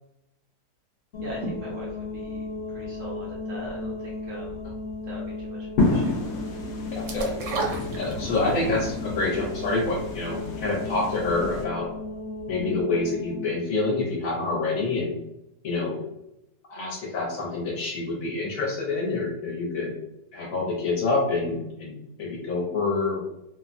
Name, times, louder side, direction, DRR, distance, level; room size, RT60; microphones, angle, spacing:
sound 1, 1.1-13.5, left 3 dB, 45° left, 1.2 m, -36 dB
voice 1, 1.2-4.6 5.0-6.2, right 1 dB, 60° right, -4 dB, 0.9 m, -40 dB
sound 2, 5.8-11.6, left 2 dB, 85° left, 0.6 m, -30 dB
voice 2, 6.9-7.3 8.0-11.9 12.5-15.1 15.6-16.0 16.7-19.9 20.3-23.2, left 3 dB, 65° left, -4 dB, 1.0 m, -27 dB
sound 3, 7.1-8.6 9.0-9.1, right 3 dB, 90° right, 1.2 m, -30 dB
2.9 x 2.1 x 2.5 m, 0.88 s
omnidirectional pair, 1.8 m